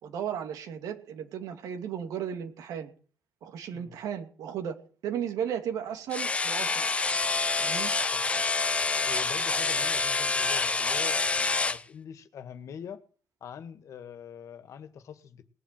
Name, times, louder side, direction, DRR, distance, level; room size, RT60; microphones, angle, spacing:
voice 1, 0.0-2.9 3.4-4.8 5.0-6.9 7.6-7.9, right 8 dB, 90° right, 2.5 m, -35 dB
sound 1, 6.1-11.8, left 3 dB, 20° left, 0.7 m, -27 dB
voice 2, 9.1-13.0 13.4-15.5, left 8 dB, 65° left, 1.7 m, -44 dB
19.5 x 7.9 x 7.6 m
cardioid pair, 125°, 6 cm